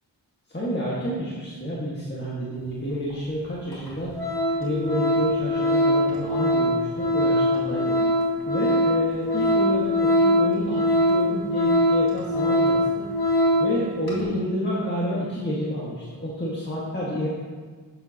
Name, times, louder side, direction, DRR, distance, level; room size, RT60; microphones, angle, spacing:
voice 1, 0.5-4.3 4.6-8.0 8.5-13.3 13.6-17.3, equal, 25° left, -8 dB, 1.7 m, -29 dB
Organ, 3.1-3.2 3.7-3.9 4.1-13.7 14.1-14.2, left 1 dB, 55° left, 2.1 m, -22 dB
11.5 x 6.8 x 2.9 m, 1.5 s
wide cardioid pair, 65°, 43 cm